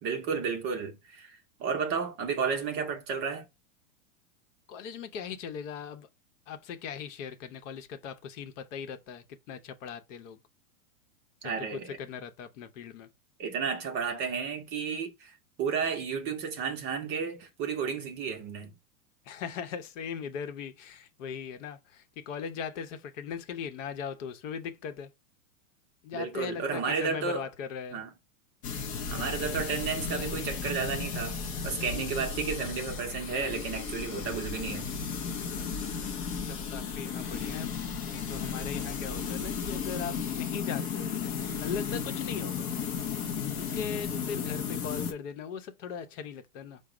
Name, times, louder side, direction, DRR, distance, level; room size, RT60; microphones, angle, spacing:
voice 1, 0.0-3.4 11.4-11.9 13.4-18.7 26.1-27.4 27.9-28.1 29.1-34.9, right 5 dB, 25° right, 0.6 m, -32 dB
voice 2, 4.7-6.1 6.5-10.4 11.9-13.1 19.3-25.1 26.0-28.0 36.5-41.1 41.6-42.7 43.5-46.8, left 7 dB, 60° left, 0.8 m, -39 dB
sound 1, 28.6-45.1, left 6 dB, 25° left, 0.4 m, -34 dB
5.0 x 2.1 x 4.7 m
supercardioid pair, 150°, 43 cm